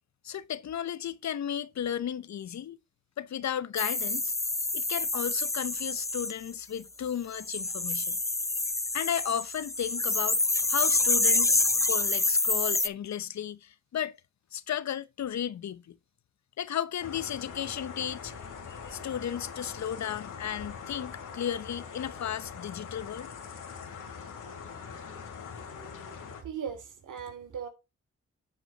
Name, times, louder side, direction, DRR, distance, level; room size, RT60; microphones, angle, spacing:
voice 1, 0.2-2.8 3.2-4.3 4.7-8.2 8.9-10.4 10.7-14.1 14.5-16.0 16.6-18.3 18.9-23.3, left 9 dB, 60° left, 0.8 m, -34 dB
sound 1, 3.8-6.3 7.3-12.9, left 2 dB, 10° left, 0.5 m, -27 dB
sound 2, 17.0-26.4, left 6 dB, 80° left, 2.5 m, -43 dB
voice 2, 26.4-27.7, right 7 dB, 80° right, 2.7 m, -38 dB
9.4 x 4.9 x 3.9 m
cardioid pair, 55°, 31 cm